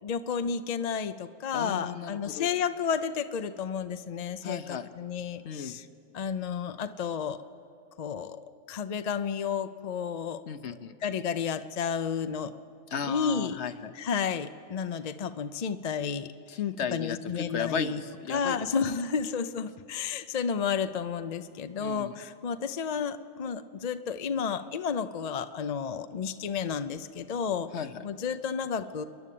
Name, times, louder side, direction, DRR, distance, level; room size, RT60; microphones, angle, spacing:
voice 1, 0.0-5.8 6.1-7.4 8.0-8.4 8.7-10.4 11.0-12.5 13.1-13.6 14.0-16.3 16.9-18.0 18.3-27.7 28.0-29.0, left 6 dB, 45° left, 10 dB, 0.5 m, -31 dB
voice 2, 1.5-2.5 4.4-4.9 5.4-5.8 10.5-10.9 12.9-13.9 16.5-18.6 21.8-22.2 27.7-28.0, left 6 dB, 60° left, 11 dB, 1.0 m, -35 dB
28.0 x 11.0 x 8.4 m, 2.6 s
omnidirectional pair, 1.3 m